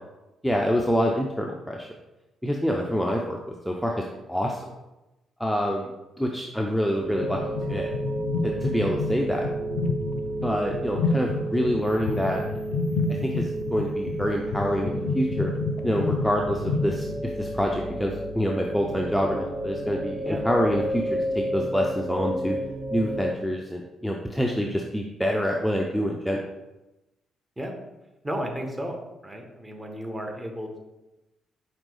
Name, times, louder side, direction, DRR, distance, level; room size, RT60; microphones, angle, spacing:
voice 1, 0.4-1.9 2.4-3.4 3.7-4.6 5.4-5.9 6.2-7.4 7.7-7.9 8.4-9.5 10.4-12.4 13.1-15.5 15.8-22.6 22.9-26.4, equal, ahead, 0 dB, 0.5 m, -26 dB
sound 1, 7.0-23.3, right 1 dB, 45° right, 0.8 m, -32 dB
sound 2, 7.2-17.3, left 4 dB, 65° left, 0.4 m, -30 dB
voice 2, 28.2-29.0 29.2-30.8, equal, 15° right, 3 dB, 1.0 m, -33 dB
5.1 x 3.1 x 3.2 m, 0.99 s
figure-of-eight pair, 40°, 0 cm